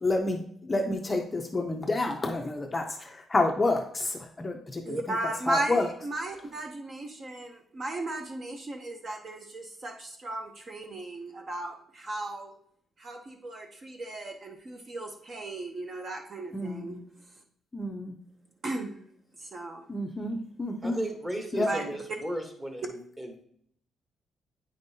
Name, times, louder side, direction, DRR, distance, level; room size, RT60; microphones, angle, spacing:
voice 1, 0.0-5.2 5.5-5.9 16.5-17.0 17.7-18.2 19.9-21.0 21.5-21.7, left 2 dB, 20° left, 3 dB, 0.5 m, -29 dB
voice 2, 4.8-12.5 13.0-17.0 18.6-19.0 19.4-19.8 21.7-21.9, right 2 dB, 30° right, 4 dB, 0.6 m, -36 dB
voice 3, 20.8-23.4, right 1 dB, 15° right, 4 dB, 1.0 m, -35 dB
8.9 x 5.2 x 2.7 m, 0.65 s
cardioid pair, 165°, 0 cm